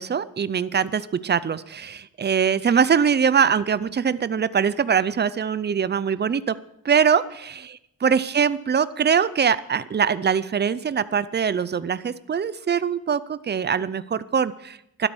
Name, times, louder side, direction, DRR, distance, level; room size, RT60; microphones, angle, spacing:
voice 1, 0.0-6.5 6.8-15.1, right 7 dB, 30° right, 16 dB, 0.5 m, -23 dB
12.5 x 12.0 x 6.2 m, 0.79 s
wide cardioid pair, 145°, 35 cm